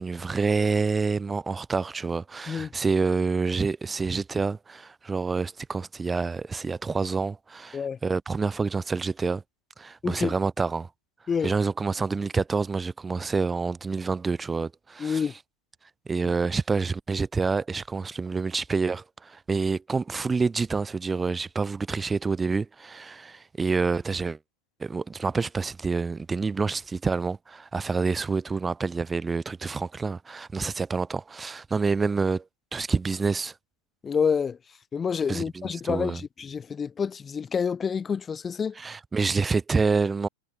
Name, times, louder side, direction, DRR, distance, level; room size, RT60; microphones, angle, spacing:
voice 1, 0.0-9.4 9.8-10.9 11.4-15.3 16.1-24.4 24.8-32.4 32.7-33.5 35.3-36.2 38.8-40.3, right 4 dB, 15° right, 0.4 m, -27 dB
voice 2, 10.0-10.3 11.3-11.5 15.0-15.3 34.0-34.6 34.9-38.8, left 6 dB, 20° left, 0.9 m, -28 dB
hypercardioid pair, 115°, 0 cm